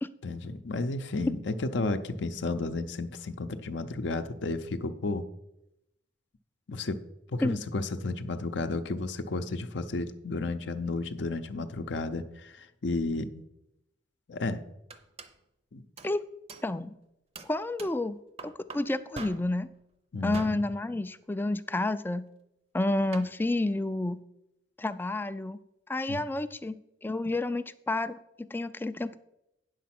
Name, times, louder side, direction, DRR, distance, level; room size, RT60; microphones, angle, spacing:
voice 1, 0.2-5.2 6.7-7.0 7.3-13.4 14.3-14.6 15.7-15.8 20.1-20.6 26.1-26.2, left 3 dB, 65° left, 7 dB, 0.6 m, -32 dB
sound 1, 14.4-14.5 14.9-15.4 16.0-16.2 16.5-16.7 17.4-18.1 18.4-19.6 20.3-20.7 23.1-23.3, right 3 dB, 30° right, 0.7 m, -44 dB
voice 2, 16.6-17.0 17.4-18.2 18.4-19.7 20.2-22.3 22.7-24.2 24.8-25.6 25.9-29.2, left 2 dB, 10° left, 12 dB, 0.3 m, -30 dB
9.2 x 6.4 x 5.9 m, 0.87 s
head